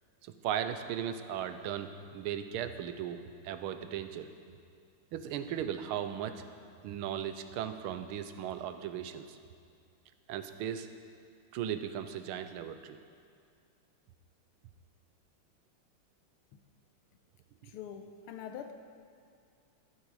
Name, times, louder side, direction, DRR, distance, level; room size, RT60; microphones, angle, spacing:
voice 1, 0.2-4.3 5.1-6.4 6.8-9.4 10.3-10.9 11.5-13.0 17.6-17.7, right 9 dB, 80° right, 10 dB, 1.5 m, -37 dB
voice 2, 17.6-18.7, left 8 dB, 85° left, 6 dB, 1.6 m, -44 dB
13.0 x 12.5 x 4.8 m, 2.3 s
omnidirectional pair, 2.4 m